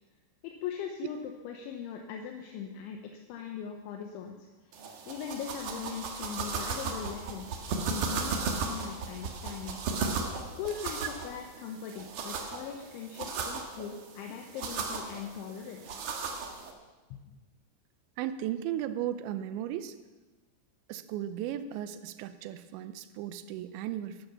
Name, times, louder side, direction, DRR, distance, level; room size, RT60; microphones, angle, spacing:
voice 1, 0.4-3.0 3.3-7.5 7.8-9.8 10.6-16.0 17.1-17.4, left 7 dB, 80° left, 3 dB, 3.3 m, -40 dB
sound 1, 4.7-16.7, right 4 dB, 65° right, 2.2 m, -36 dB
voice 2, 18.2-20.0 20.9-24.3, right 11 dB, 80° right, 12 dB, 2.8 m, -36 dB
12.0 x 12.0 x 7.0 m, 1.2 s
omnidirectional pair, 5.5 m